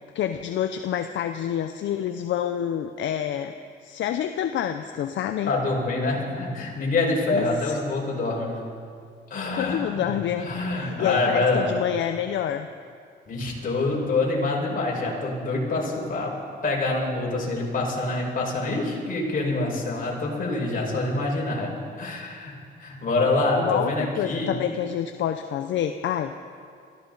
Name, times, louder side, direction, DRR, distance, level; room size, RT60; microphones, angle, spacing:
voice 1, 0.1-3.6 3.8-5.5 7.3-7.8 9.5-10.5 10.8-12.7 23.6-26.4, left 10 dB, 70° left, 8 dB, 0.6 m, -28 dB
voice 2, 5.5-8.5 9.3-10.1 10.4-11.7 13.3-16.4 16.6-22.5 22.8-24.5, left 2 dB, 45° left, -2 dB, 5.0 m, -26 dB
23.0 x 15.0 x 4.0 m, 2.2 s
cardioid pair, 90°, 20 cm